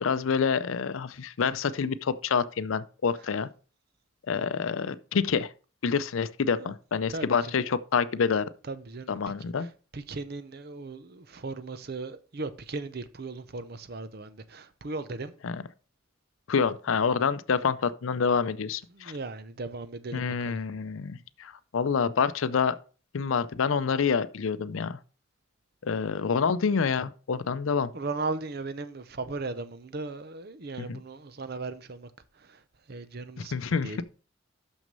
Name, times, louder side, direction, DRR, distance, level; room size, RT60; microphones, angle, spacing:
voice 1, 0.0-3.5 4.3-5.5 5.8-8.4 9.1-9.7 15.4-15.6 16.5-19.1 20.1-22.8 23.1-25.0 25.8-27.9 30.8-31.0 33.4-34.0, left 6 dB, 75° left, 0.5 m, -27 dB
voice 2, 8.7-9.1 9.9-15.3 18.9-20.6 27.9-32.1 32.9-33.5 33.8-34.0, right 3 dB, 50° right, 0.7 m, -37 dB
6.4 x 6.1 x 5.4 m
head